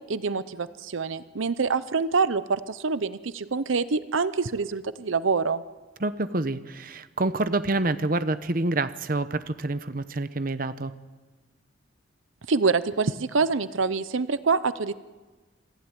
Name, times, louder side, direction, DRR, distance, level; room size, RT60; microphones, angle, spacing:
voice 1, 0.0-5.6 12.5-14.9, right 4 dB, 80° right, 15 dB, 0.7 m, -26 dB
voice 2, 6.0-10.9, right 2 dB, 45° right, 12 dB, 0.9 m, -27 dB
27.0 x 15.5 x 9.9 m, 1.3 s
head